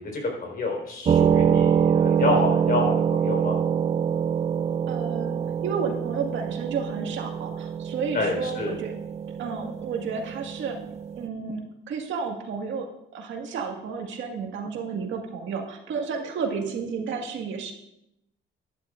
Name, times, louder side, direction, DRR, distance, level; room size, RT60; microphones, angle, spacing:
voice 1, 0.0-3.6 8.1-8.7, left 2 dB, 50° left, 1 dB, 4.4 m, -28 dB
sound 1, 1.1-11.3, right 7 dB, 35° right, 0.4 m, -25 dB
voice 2, 4.9-5.3 5.6-8.9 9.4-10.8 11.2-12.9 13.1-17.7, right 5 dB, 75° right, 2 dB, 1.9 m, -31 dB
13.5 x 11.5 x 2.5 m, 0.81 s
cardioid pair, 90°, 20 cm